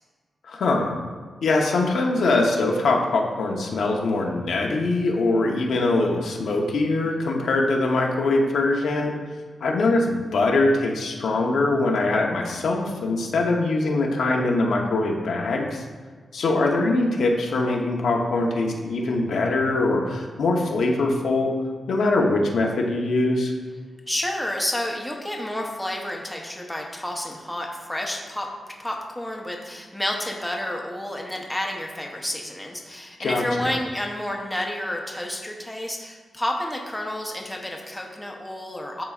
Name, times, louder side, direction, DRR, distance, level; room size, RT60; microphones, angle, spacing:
voice 1, 0.5-0.9 1.4-9.1 9.6-15.8 16.3-21.5 21.9-23.5 33.2-33.7, left 2 dB, 80° left, 0 dB, 0.8 m, -22 dB
voice 2, 24.1-28.5 28.8-39.0, left 1 dB, 5° left, 0 dB, 0.8 m, -30 dB
10.5 x 4.0 x 2.4 m, 1.5 s
wide cardioid pair, 120°, 0 cm